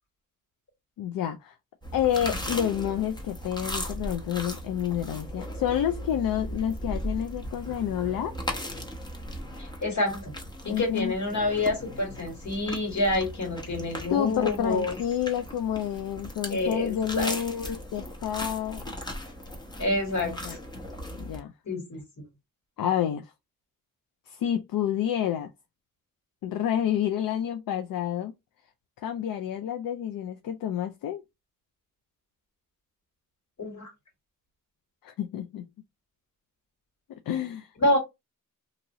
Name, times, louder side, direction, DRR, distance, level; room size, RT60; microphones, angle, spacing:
voice 1, 1.0-1.5 1.9-8.4 10.6-11.1 14.1-18.9 20.2-20.6 21.2-21.5 22.8-23.3 24.3-25.5 26.4-28.3 29.0-31.2 35.0-35.7 37.3-37.7, left 10 dB, 75° left, 0.5 m, -29 dB
sound 1, 1.8-21.4, equal, 15° left, 0.9 m, -38 dB
voice 2, 9.6-10.3 10.6-15.0 16.5-17.4 19.8-20.6 21.7-22.0 33.6-33.9 37.8-38.0, left 2 dB, 55° left, 2.0 m, -28 dB
2.9 x 2.6 x 2.7 m
cardioid pair, 95°, 34 cm